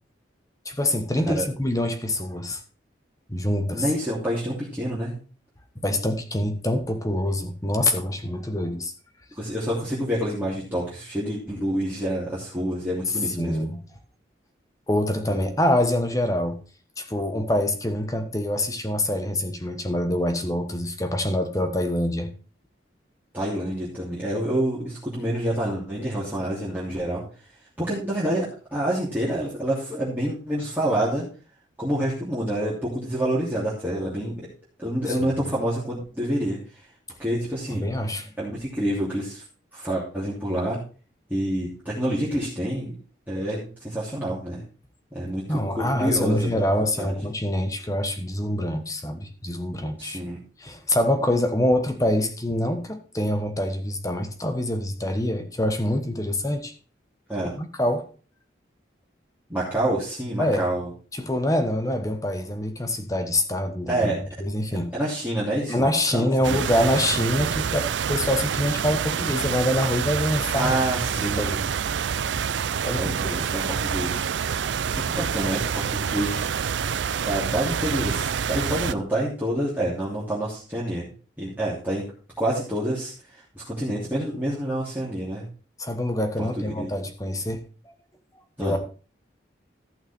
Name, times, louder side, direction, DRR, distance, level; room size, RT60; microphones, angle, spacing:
voice 1, 0.6-2.6 3.3-3.9 5.7-8.9 13.1-13.8 14.9-16.6 17.0-22.3 35.1-35.2 37.7-38.3 45.5-50.2 50.6-56.7 57.4-58.1 60.4-60.7 61.1-64.9 65.7-70.8 71.2-71.7 71.9-72.4 72.8-73.4 85.8-87.6 88.6-88.8, left 1 dB, 20° left, 1.2 m, -25 dB
voice 2, 3.7-5.2 9.4-13.6 15.3-15.4 23.3-27.2 27.8-28.5 28.7-31.2 31.8-34.4 34.8-36.6 37.2-37.8 38.4-39.4 39.7-40.8 41.3-42.9 43.3-44.6 45.1-47.2 50.0-50.4 57.3-57.5 59.5-60.9 63.9-64.2 64.7-65.9 66.1-66.6 70.5-71.5 73.0-74.2 74.9-76.5 77.2-81.1 81.4-82.0 82.4-83.1 83.5-85.4 86.4-86.9 88.6-88.8, right 1 dB, 10° right, 3.0 m, -27 dB
sound 1, 66.4-78.9, right 7 dB, 75° right, 0.4 m, -27 dB
14.5 x 6.0 x 4.4 m
head